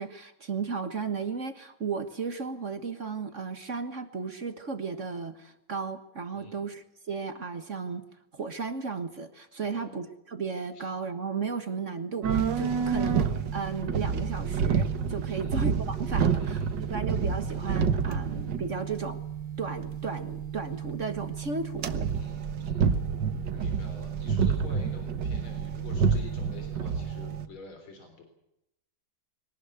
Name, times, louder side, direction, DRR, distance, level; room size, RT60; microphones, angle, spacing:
voice 1, 0.0-8.0 8.3-19.2 19.6-22.1, right 5 dB, 40° right, 9 dB, 1.6 m, -35 dB
sound 1, 12.2-27.5, right 6 dB, 65° right, 1.9 m, -29 dB
voice 2, 15.3-15.6 16.3-17.0 18.1-18.2 22.1-22.9 23.5-28.2, left 3 dB, 85° left, 4 dB, 4.5 m, -48 dB
23.0 x 18.5 x 8.2 m, 0.84 s
omnidirectional pair, 2.2 m